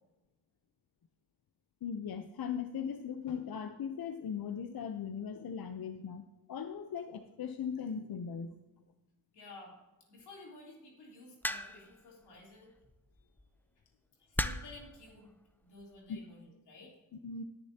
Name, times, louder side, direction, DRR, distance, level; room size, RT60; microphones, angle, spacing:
voice 1, 1.8-6.2 6.5-8.6 16.1-16.2 17.1-17.4, left 7 dB, 65° left, 8 dB, 0.7 m, -39 dB
voice 2, 9.3-9.7 10.1-12.7 14.2-15.3 15.6-16.9, left 2 dB, 90° left, -2 dB, 3.3 m, -53 dB
sound 1, 11.4-12.0 13.2-13.4 14.4-14.8 15.8-16.1, left 1 dB, 5° left, 0.6 m, -35 dB
19.0 x 6.8 x 2.8 m, 1.1 s
cardioid pair, 60°, 39 cm